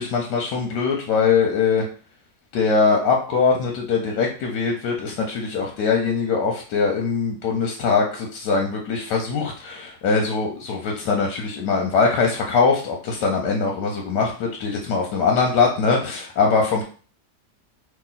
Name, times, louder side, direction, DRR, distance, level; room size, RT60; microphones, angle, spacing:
voice 1, 0.0-1.8 2.5-16.8, left 5 dB, 80° left, 1 dB, 1.3 m, -22 dB
3.0 x 2.8 x 3.9 m, 0.40 s
omnidirectional pair, 1.8 m